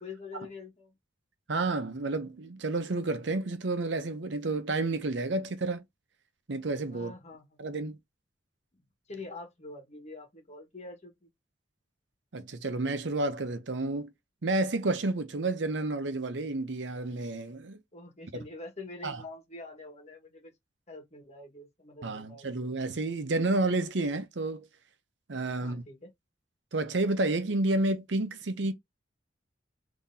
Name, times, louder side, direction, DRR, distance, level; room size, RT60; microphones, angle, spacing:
voice 1, 0.0-0.9 6.9-7.6 9.1-11.3 17.9-20.5 20.9-22.5 25.6-26.1, left 3 dB, 35° left, 1.5 m, -45 dB
voice 2, 1.5-5.8 6.5-7.1 7.6-8.0 12.3-14.1 14.4-17.8 19.0-19.2 22.0-24.7 25.3-25.8 26.7-28.7, right 2 dB, 70° right, 0.8 m, -30 dB
3.8 x 2.9 x 2.7 m
head